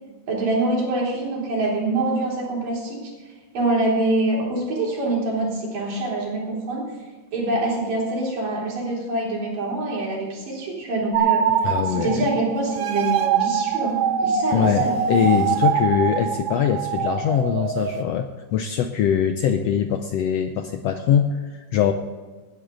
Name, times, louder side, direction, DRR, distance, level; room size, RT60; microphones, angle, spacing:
voice 1, 0.3-3.0 3.5-6.9 7.3-11.5 11.8-15.0, right 2 dB, 85° right, -3 dB, 5.4 m, -25 dB
sound 1, 11.1-18.0, right 8 dB, 70° right, 1.4 m, -23 dB
voice 2, 11.6-12.3 14.5-21.9, left 8 dB, 90° left, 7 dB, 1.4 m, -22 dB
19.5 x 10.0 x 3.9 m, 1.4 s
omnidirectional pair, 3.7 m